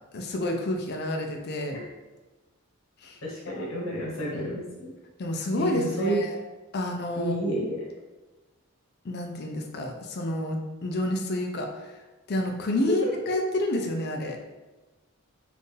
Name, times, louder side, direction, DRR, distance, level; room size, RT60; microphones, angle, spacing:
voice 1, 0.1-1.8 3.0-3.2 3.5-3.7 5.2-6.4 6.7-7.4 9.0-12.0 12.3-14.4, left 1 dB, 50° left, 3 dB, 0.4 m, -29 dB
voice 2, 3.2-4.9 5.6-6.2 7.2-7.8 12.9-13.1 13.4-13.5, equal, 70° left, -5 dB, 1.1 m, -30 dB
4.3 x 2.5 x 3.2 m, 1.2 s
head